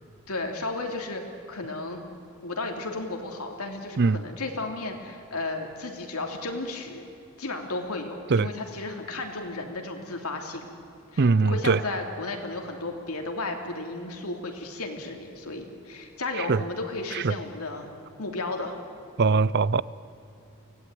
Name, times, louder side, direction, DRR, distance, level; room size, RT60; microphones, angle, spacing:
voice 1, 0.3-1.2 1.5-2.0 2.4-7.0 7.4-10.7 11.1-17.9 18.2-18.8, left 2 dB, 80° left, 3 dB, 3.1 m, -34 dB
voice 2, 11.2-11.8 16.4-16.6 17.1-17.3 19.2-19.8, right 4 dB, 50° right, 20 dB, 0.5 m, -21 dB
24.0 x 18.0 x 9.2 m, 2.7 s
head